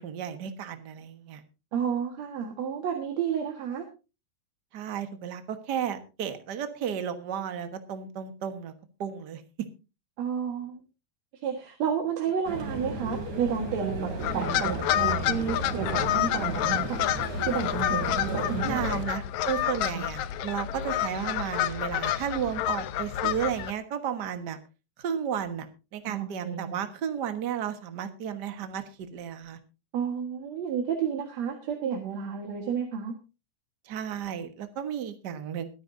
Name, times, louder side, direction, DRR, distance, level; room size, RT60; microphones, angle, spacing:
voice 1, 0.0-1.4 4.7-8.7 9.0-9.4 18.6-24.6 25.0-25.7 25.9-29.6 33.8-35.7, right 8 dB, 45° right, 8 dB, 1.5 m, -33 dB
voice 2, 1.7-3.8 10.2-10.8 11.4-17.0 17.5-18.8 26.1-26.8 29.9-33.1, right 7 dB, 65° right, 3 dB, 2.8 m, -31 dB
sound 1, 12.4-19.1, right 2 dB, 90° right, 4.7 m, -34 dB
sound 2, 14.2-23.7, left 12 dB, 80° left, 2.1 m, -29 dB
22.0 x 10.5 x 2.7 m, 0.30 s
omnidirectional pair, 3.4 m